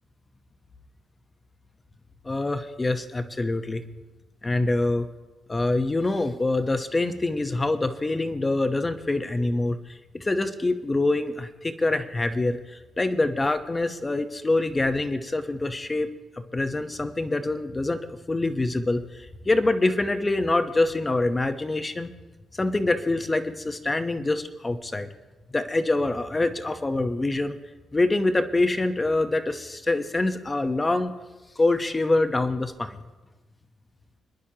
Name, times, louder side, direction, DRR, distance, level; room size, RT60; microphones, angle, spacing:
voice 1, 2.2-3.8 4.4-5.1 5.5-16.1 16.5-22.1 22.5-25.1 25.5-27.6 27.9-31.2 31.6-33.0, left 2 dB, 20° left, 8 dB, 0.9 m, -25 dB
26.5 x 10.5 x 2.9 m, 1.2 s
cardioid pair, 130°, 0 cm